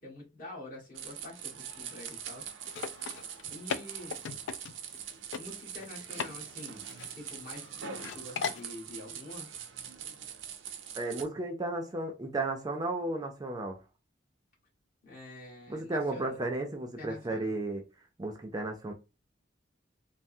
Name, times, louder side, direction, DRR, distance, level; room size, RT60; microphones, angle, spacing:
voice 1, 0.0-2.5 3.5-4.2 5.3-6.8 7.2-9.5 15.0-16.4 17.0-17.6, left 1 dB, 45° left, 1.4 m, -46 dB
sound 1, 0.9-11.2, right 9 dB, 85° right, 0.5 m, -43 dB
sound 2, 2.6-5.0 5.3-5.4 5.8-6.3 6.6-7.6 8.0-8.6, left 6 dB, 75° left, 0.3 m, -37 dB
voice 2, 10.9-13.8 15.7-17.8 18.2-18.9, right 2 dB, 20° right, 0.4 m, -34 dB
3.3 x 2.0 x 2.6 m
head